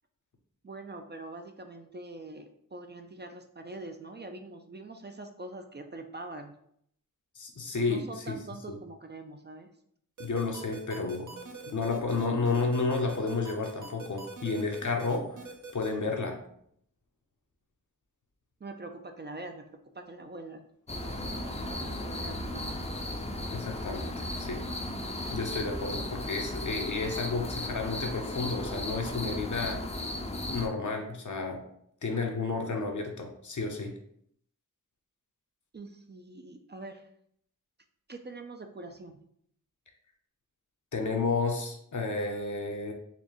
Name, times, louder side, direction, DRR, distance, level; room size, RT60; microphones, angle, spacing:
voice 1, 0.6-6.5 7.9-9.7 18.6-20.6 20.9-22.7 35.7-37.1 38.1-39.2, right 2 dB, 35° right, 5 dB, 0.4 m, -44 dB
voice 2, 7.4-8.4 8.7-8.8 10.2-11.3 11.7-15.4 15.7-16.4 23.5-24.6 25.3-30.1 30.5-31.6 32.0-33.9 40.9-42.9, left 3 dB, 65° left, 2 dB, 0.8 m, -31 dB
sound 1, 10.2-15.9, right 4 dB, 65° right, 0.8 m, -43 dB
sound 2, 20.9-30.7, left 1 dB, 20° left, 0.5 m, -36 dB
4.1 x 2.6 x 3.0 m, 0.69 s
wide cardioid pair, 50°, 33 cm